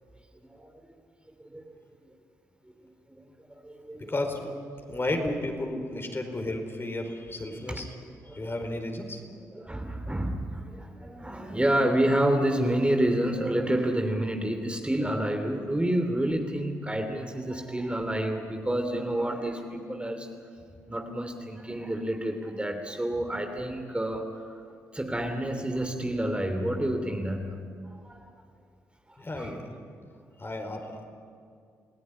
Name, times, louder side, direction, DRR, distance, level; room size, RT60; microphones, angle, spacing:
voice 1, 0.5-1.0 1.4-1.7 3.5-4.1 7.6-7.9 8.3-8.5 9.5-20.3 20.9-24.4 24.9-27.6 28.0-28.2 29.4-29.6, right 1 dB, 15° right, 4 dB, 3.0 m, -29 dB
voice 2, 4.1-4.5 4.9-7.9 8.3-9.2 29.2-29.7 30.4-31.0, left 1 dB, 30° left, 4 dB, 4.8 m, -33 dB
28.5 x 17.0 x 10.0 m, 2.3 s
hypercardioid pair, 45°, 8 cm